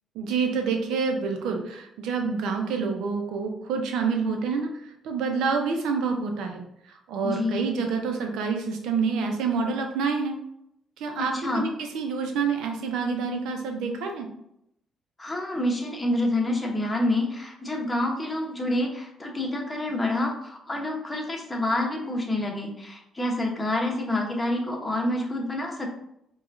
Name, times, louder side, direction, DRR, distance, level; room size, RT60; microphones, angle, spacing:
voice 1, 0.1-4.7 5.0-6.6 7.1-10.4 11.0-14.3, right 5 dB, 90° right, 4 dB, 0.6 m, -27 dB
voice 2, 7.2-7.6 11.2-11.7 15.2-25.9, left 1 dB, 20° left, 0 dB, 0.9 m, -27 dB
4.8 x 2.4 x 2.6 m, 0.77 s
cardioid pair, 90°, 0 cm